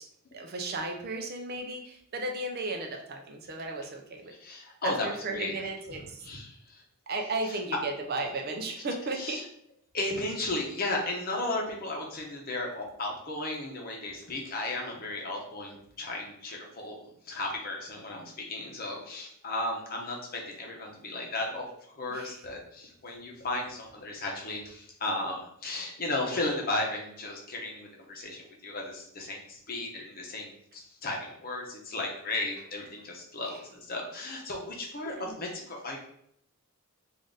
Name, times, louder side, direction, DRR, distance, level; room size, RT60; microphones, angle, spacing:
voice 1, 0.3-4.3 4.8-6.2 7.1-9.4 22.1-22.4 35.0-35.4, right 2 dB, 45° right, 3 dB, 0.5 m, -35 dB
voice 2, 4.4-5.6 5.9-6.8 7.4-7.6 9.1-9.4 9.9-16.9 17.3-21.7 21.9-36.0, left 2 dB, 40° left, 0 dB, 0.8 m, -35 dB
3.7 x 2.6 x 3.8 m, 0.70 s
head